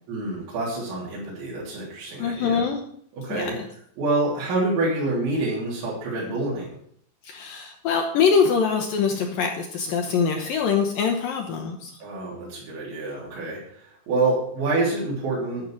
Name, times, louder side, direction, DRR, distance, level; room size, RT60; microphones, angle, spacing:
voice 1, 0.1-2.6 3.2-3.5 4.0-6.8 12.0-15.7, right 2 dB, 80° right, -7 dB, 5.8 m, -27 dB
voice 2, 2.2-2.8 3.3-3.5 7.2-11.9, left 6 dB, 75° left, 3 dB, 2.1 m, -23 dB
12.0 x 5.4 x 7.5 m, 0.65 s
omnidirectional pair, 5.2 m